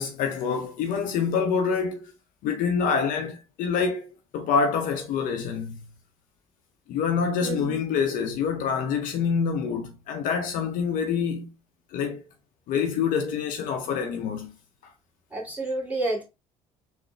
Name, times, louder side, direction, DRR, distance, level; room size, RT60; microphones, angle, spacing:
voice 1, 0.0-2.1 2.4-5.8 6.9-11.5 11.9-12.2 12.7-14.5, left 6 dB, 60° left, 0.7 m, -26 dB
voice 2, 7.4-7.8 15.3-16.2, right 2 dB, 10° right, 2.2 m, -30 dB
3.7 x 2.6 x 3.2 m
hypercardioid pair, 60°, 16 cm